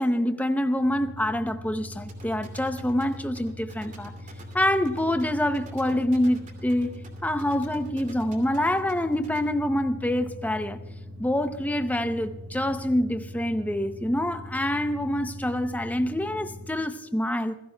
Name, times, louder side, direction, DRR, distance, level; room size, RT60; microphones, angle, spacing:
voice 1, 0.0-4.1 4.5-10.8 11.2-17.6, left 1 dB, 5° left, 0.6 m, -26 dB
sound 1, 0.8-16.9, left 1 dB, 55° right, 1.5 m, -41 dB
sound 2, 2.1-9.4, right 3 dB, 35° right, 2.6 m, -49 dB
27.5 x 16.5 x 2.2 m
head